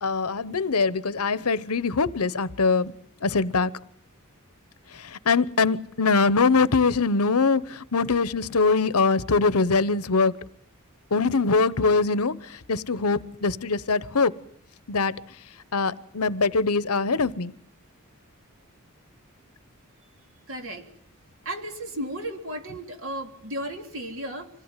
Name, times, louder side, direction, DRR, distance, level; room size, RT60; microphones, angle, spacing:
voice 1, 0.0-2.9 3.2-3.7 5.3-10.3 11.1-12.3 12.7-14.3 14.9-15.1 15.7-17.5, left 4 dB, 80° left, 1.0 m, -22 dB
voice 2, 20.5-20.8 21.4-24.5, right 1 dB, 65° right, 3.3 m, -34 dB
26.0 x 17.0 x 9.1 m
head